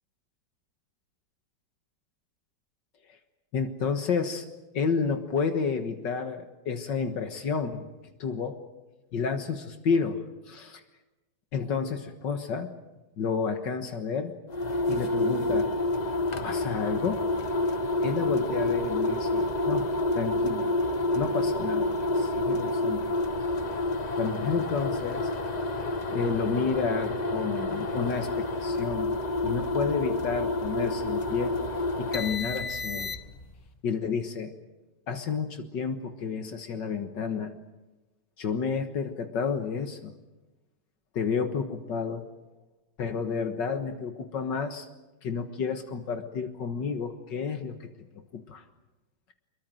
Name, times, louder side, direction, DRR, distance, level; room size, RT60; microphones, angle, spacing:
voice 1, 3.5-4.5 4.7-7.9 8.2-8.6 9.1-10.8 11.5-12.7 13.2-14.4 14.9-15.7 16.4-17.2 18.0-19.9 20.2-20.7 21.1-23.1 24.2-25.3 26.1-29.1 29.4-31.6 32.0-33.1 33.8-34.5 35.1-37.6 38.4-40.1 41.1-42.2 43.0-44.9 45.2-47.9 48.3-48.6, left 5 dB, 80° left, 7 dB, 2.2 m, -30 dB
sound 1, 14.5-33.5, left 2 dB, 35° left, 0.8 m, -29 dB
25.0 x 23.0 x 7.7 m, 1.1 s
omnidirectional pair, 1.9 m